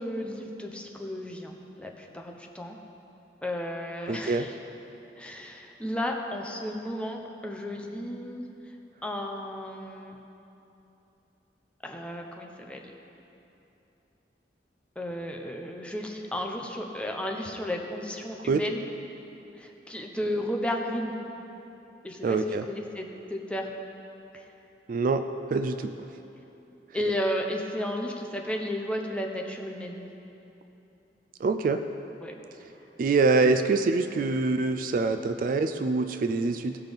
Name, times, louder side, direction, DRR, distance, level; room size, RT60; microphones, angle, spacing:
voice 1, 0.0-2.8 3.4-4.6 5.2-8.4 9.0-10.2 11.8-12.8 15.0-18.9 19.6-21.1 22.0-23.7 24.3-24.5 26.9-30.1 32.2-32.3, left 1 dB, 5° left, 1 dB, 0.7 m, -33 dB
voice 2, 4.1-4.5 18.5-18.6 22.2-22.6 24.9-25.3 25.5-25.9 31.4-31.8 33.0-36.8, right 3 dB, 50° right, 9 dB, 0.3 m, -25 dB
16.0 x 5.8 x 3.5 m, 3.0 s
head